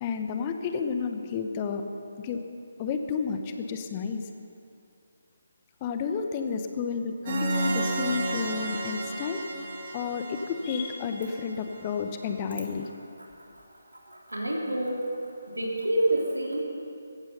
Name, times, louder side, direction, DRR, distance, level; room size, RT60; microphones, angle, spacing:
voice 1, 0.0-1.8 2.2-2.4 2.8-4.2 5.8-9.4 9.9-12.9, left 6 dB, 25° left, 6 dB, 1.1 m, -31 dB
sound 1, 7.3-11.9, right 2 dB, 35° right, 2.6 m, -32 dB
voice 2, 13.9-15.1 15.5-16.6, right 1 dB, 85° right, -2 dB, 3.4 m, -28 dB
16.0 x 15.5 x 5.6 m, 2.5 s
figure-of-eight pair, 150°, 0 cm